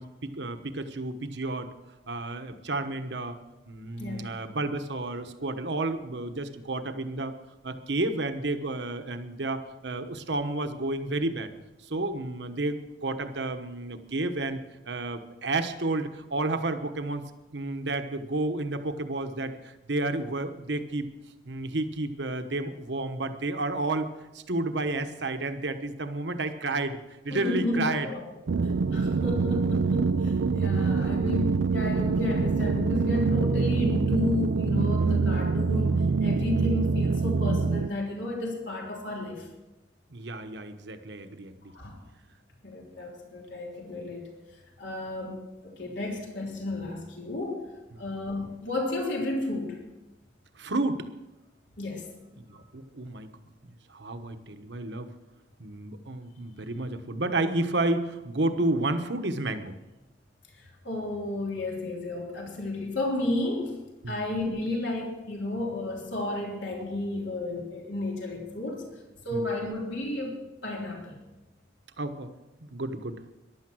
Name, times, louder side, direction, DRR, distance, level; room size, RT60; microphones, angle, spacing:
voice 1, 0.0-1.7 2.1-3.4 3.7-7.4 7.6-11.5 11.9-14.6 14.9-17.2 17.5-21.1 21.5-27.0 27.2-28.1 34.9-35.1 40.1-41.7 50.6-51.1 52.5-53.3 53.6-55.1 55.6-59.7 64.0-64.2 69.3-69.5 72.0-72.3 72.6-73.2, right 2 dB, 70° right, 8 dB, 1.2 m, -31 dB
voice 2, 4.0-4.3 27.3-28.4 28.9-39.5 41.7-42.0 42.6-44.3 44.8-47.7 48.0-49.8 51.8-52.0 60.6-69.0 69.2-71.2, left 2 dB, 80° left, -1 dB, 3.4 m, -32 dB
sound 1, 28.5-37.9, right 4 dB, 85° right, 0.5 m, -25 dB
15.0 x 11.5 x 6.3 m, 1.0 s
head